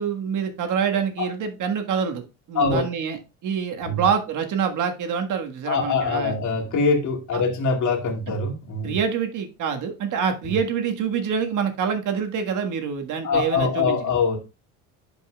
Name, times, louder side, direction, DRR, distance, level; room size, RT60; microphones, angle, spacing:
voice 1, 0.0-2.2 2.5-3.2 3.4-6.4 7.3-7.4 8.8-14.1, right 7 dB, 50° right, 1.5 m, -26 dB
voice 2, 5.7-9.0 10.5-10.6 13.2-14.4, left 4 dB, 50° left, 2.3 m, -23 dB
11.0 x 5.4 x 2.3 m
supercardioid pair, 95°, 39 cm